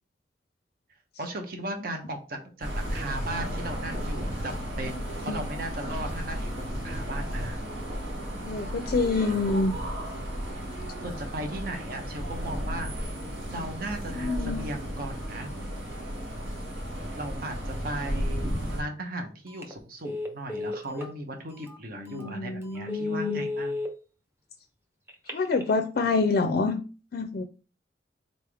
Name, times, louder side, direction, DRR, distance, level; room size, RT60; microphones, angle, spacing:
voice 1, 1.2-7.6 11.0-12.9 13.5-15.5 17.2-23.8, right 1 dB, 55° right, 5 dB, 0.8 m, -37 dB
sound 1, 2.6-18.8, equal, 85° right, 1.9 m, -34 dB
voice 2, 8.4-9.7 14.2-14.6 22.0-23.4 25.3-26.8 27.1-27.4, left 3 dB, 55° left, 6 dB, 0.4 m, -27 dB
Telephone, 19.5-19.7 20.0-21.1 21.7-21.8 22.2-22.3 22.7-23.9 25.1-25.7, left 2 dB, 15° right, 0.8 m, -33 dB
3.9 x 3.4 x 3.4 m, 0.35 s
head